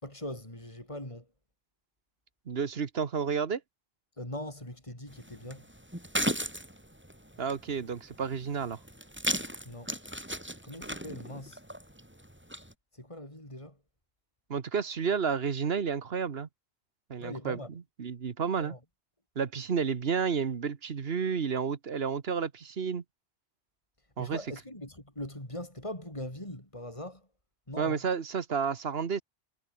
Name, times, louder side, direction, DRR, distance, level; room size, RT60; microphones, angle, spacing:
voice 1, 0.0-1.3 4.2-5.7 9.6-9.9 10.6-11.6 12.9-13.8 17.2-17.7 18.6-18.8 24.2-27.3 27.7-28.0, left 1 dB, 30° left, 5.9 m, -41 dB
voice 2, 2.5-3.6 7.4-8.8 14.5-16.5 17.1-17.6 18.0-18.7 19.3-23.0 24.2-24.4 27.8-29.2, right 6 dB, 70° right, 1.4 m, -31 dB
sound 1, 5.1-12.7, equal, 10° right, 4.1 m, -37 dB
omnidirectional pair, 1.1 m